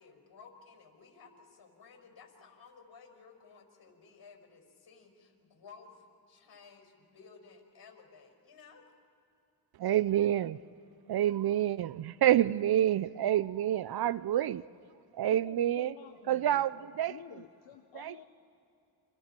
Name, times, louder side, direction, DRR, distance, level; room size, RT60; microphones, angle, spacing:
voice 1, 0.0-8.9, left 5 dB, 55° left, 3 dB, 5.3 m, -56 dB
voice 2, 9.8-10.6 11.1-14.6 15.1-15.9 16.3-17.1 17.9-18.2, right 12 dB, 55° right, 19 dB, 0.5 m, -28 dB
voice 3, 15.1-18.2, left 9 dB, 80° left, 6 dB, 1.1 m, -52 dB
29.5 x 26.0 x 4.5 m, 2.7 s
cardioid pair, 80°, 45 cm